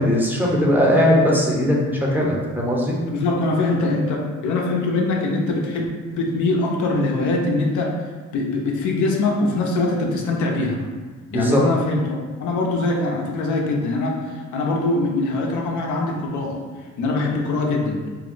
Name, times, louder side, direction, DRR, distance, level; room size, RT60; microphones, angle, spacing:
voice 1, 0.0-3.0 11.3-11.6, equal, 5° right, -4 dB, 0.6 m, -19 dB
voice 2, 3.1-8.0 8.3-10.9 11.3-16.6 17.0-18.0, left 2 dB, 75° left, 0 dB, 0.6 m, -23 dB
2.6 x 2.0 x 3.8 m, 1.4 s
cardioid pair, 90°, 30 cm